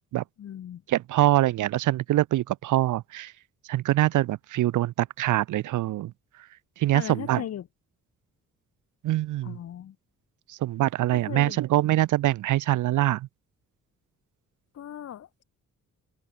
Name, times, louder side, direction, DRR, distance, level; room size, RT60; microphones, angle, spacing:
voice 1, 0.4-0.8 6.9-7.7 9.4-10.0 11.2-11.6 14.7-15.4, left 10 dB, 55° left, 0.9 m, -37 dB
voice 2, 0.9-3.3 3.7-6.1 6.8-7.4 9.0-9.5 10.6-13.3, right 15 dB, 80° right, 0.6 m, -24 dB
open air
cardioid pair, 105°, 30 cm